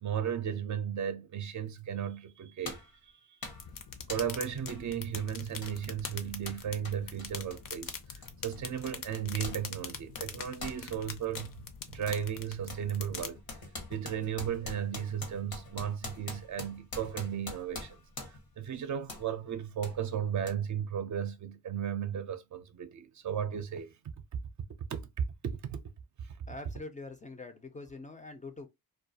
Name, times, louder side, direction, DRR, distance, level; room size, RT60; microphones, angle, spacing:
voice 1, 0.0-3.1 4.1-7.9 8.4-13.4 13.9-18.0 18.6-24.0 24.9-25.0 25.6-25.8, right 9 dB, 55° right, 0.5 m, -35 dB
sound 1, 1.8-1.9 2.6-3.0 3.4-3.7 4.1-4.4 4.7-4.8 5.1-9.6 9.9-11.5 12.1-12.3 12.7-18.5 19.1-19.3 19.8-20.0 20.5-20.6, left 3 dB, 85° left, 1.0 m, -44 dB
sound 2, 3.5-13.3, left 6 dB, 65° left, 0.6 m, -44 dB
voice 2, 26.5-28.7, left 2 dB, 20° left, 0.4 m, -44 dB
2.3 x 2.3 x 2.6 m
cardioid pair, 100°, 35 cm